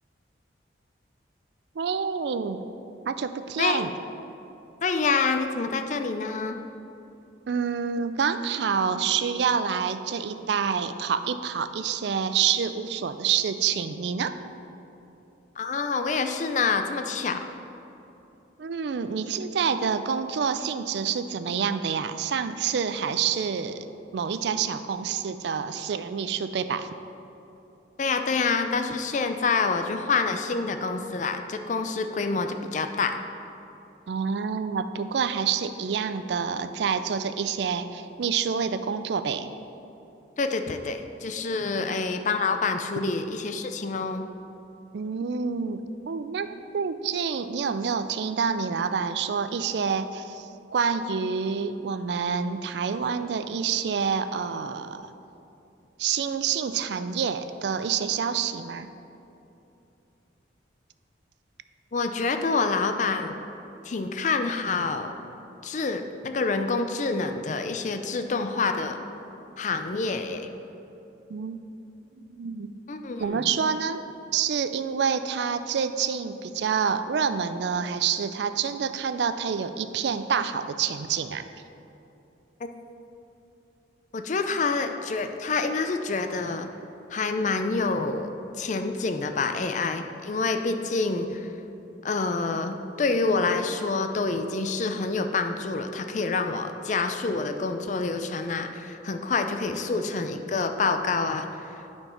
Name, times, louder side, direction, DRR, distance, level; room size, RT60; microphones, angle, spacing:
voice 1, 1.8-2.7 3.1-3.9 7.5-14.3 18.6-23.9 24.1-26.9 34.1-39.5 41.8-41.9 44.9-45.8 46.1-46.5 46.7-55.1 56.0-58.9 71.3-71.6 72.2-72.7 73.2-74.0 74.3-81.5, right 6 dB, 65° right, 11 dB, 0.4 m, -27 dB
voice 2, 4.8-6.6 15.6-17.4 28.0-33.2 40.4-44.2 61.9-63.4 63.8-65.2 65.6-69.0 69.6-70.5 72.9-73.5 84.1-86.7 87.1-88.3 88.6-91.5 92.0-92.7 93.0-101.8, left 4 dB, 40° left, 7 dB, 0.4 m, -27 dB
8.8 x 4.5 x 5.7 m, 2.9 s
head